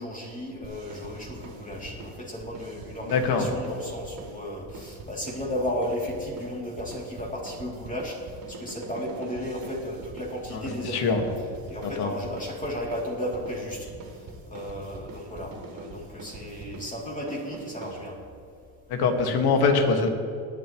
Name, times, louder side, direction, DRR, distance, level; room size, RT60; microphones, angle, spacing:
voice 1, 0.0-11.2 11.7-13.9 14.5-18.2, equal, 20° left, -4 dB, 3.0 m, -34 dB
sound 1, 0.6-18.4, right 3 dB, 60° right, 2.8 m, -43 dB
voice 2, 3.1-3.5 10.5-11.2 11.8-12.1 18.9-20.1, left 4 dB, 65° left, 4 dB, 1.9 m, -23 dB
19.5 x 9.5 x 3.1 m, 2.5 s
cardioid pair, 100°, 40 cm